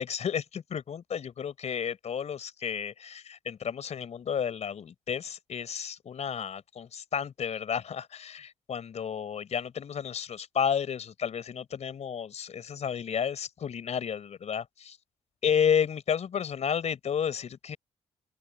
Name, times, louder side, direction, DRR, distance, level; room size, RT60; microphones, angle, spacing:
voice 1, 0.0-15.0 15.4-17.8, left 8 dB, 55° left, 4.2 m, -31 dB
open air
supercardioid pair, 65°, 13 cm